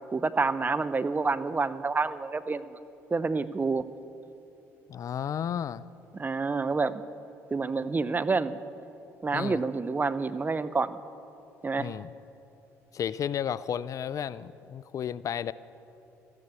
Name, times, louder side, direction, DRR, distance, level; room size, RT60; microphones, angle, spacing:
voice 1, 0.1-2.8 3.1-3.9 6.1-7.0 7.5-8.6 9.2-11.0 11.6-11.9, right 4 dB, 25° right, 14 dB, 0.6 m, -28 dB
voice 2, 4.9-5.8 9.3-9.6 11.8-12.1 12.9-15.5, left 9 dB, 50° left, 18 dB, 0.4 m, -33 dB
13.5 x 9.7 x 8.3 m, 2.9 s
hypercardioid pair, 60°, 7 cm